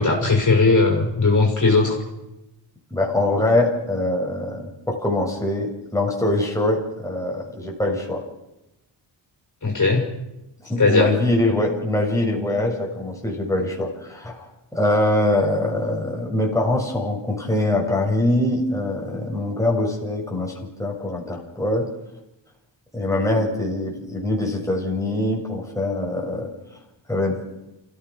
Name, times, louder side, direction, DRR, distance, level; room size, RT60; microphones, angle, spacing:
voice 1, 0.0-2.0 9.6-10.0 10.8-11.1, left 3 dB, 40° left, 0 dB, 6.1 m, -18 dB
voice 2, 2.9-8.2 10.6-14.5 14.7-20.5 20.8-21.9 22.9-26.5 27.1-27.4, left 1 dB, 5° left, -2 dB, 7.1 m, -23 dB
28.5 x 16.0 x 6.4 m, 0.92 s
cardioid pair, 90°, 44 cm